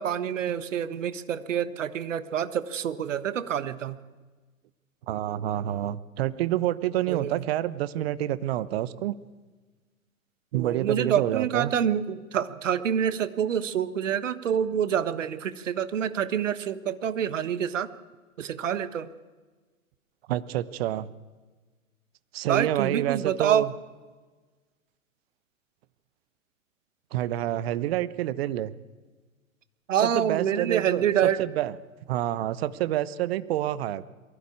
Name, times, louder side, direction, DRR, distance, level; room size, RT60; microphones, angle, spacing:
voice 1, 0.0-4.0 7.1-7.4 10.5-17.9 18.4-19.1 22.5-23.7 29.9-31.4, right 9 dB, 65° right, 13 dB, 1.4 m, -27 dB
voice 2, 5.1-9.2 10.5-11.7 20.3-21.1 22.3-23.7 27.1-28.7 30.0-31.7 32.1-34.0, right 13 dB, 45° right, 16 dB, 1.1 m, -28 dB
22.5 x 16.0 x 8.6 m, 1.3 s
figure-of-eight pair, 100°, 41 cm